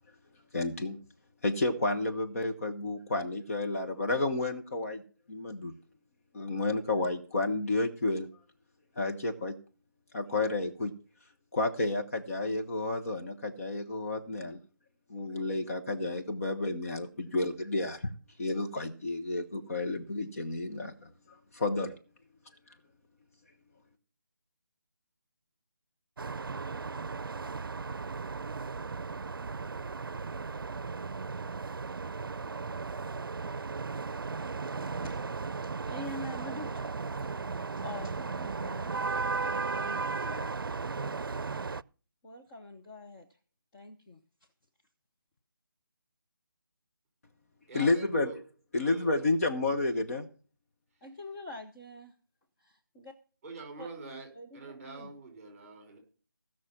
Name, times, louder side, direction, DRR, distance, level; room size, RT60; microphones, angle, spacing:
voice 1, 0.5-1.0 1.4-5.0 5.3-5.7 6.3-8.3 9.0-9.5 10.1-10.9 11.5-14.6 15.1-18.1 18.4-21.9 47.7-48.3 48.7-50.3, left 2 dB, 40° left, 4 dB, 1.3 m, -31 dB
sound 1, 26.2-41.8, right 4 dB, 80° right, 0.5 m, -36 dB
voice 2, 34.4-35.1 35.6-36.9 37.4-39.0 39.4-40.6 42.2-43.4 43.7-44.2 51.0-52.1 52.6-53.1 53.8-53.9 54.3-55.1, left 1 dB, 15° left, 1 dB, 0.8 m, -45 dB
voice 3, 47.7-48.4 48.8-49.2 53.4-56.0, right 3 dB, 20° right, 3 dB, 5.1 m, -45 dB
16.5 x 6.2 x 5.9 m, 0.40 s
figure-of-eight pair, 165°, 11 cm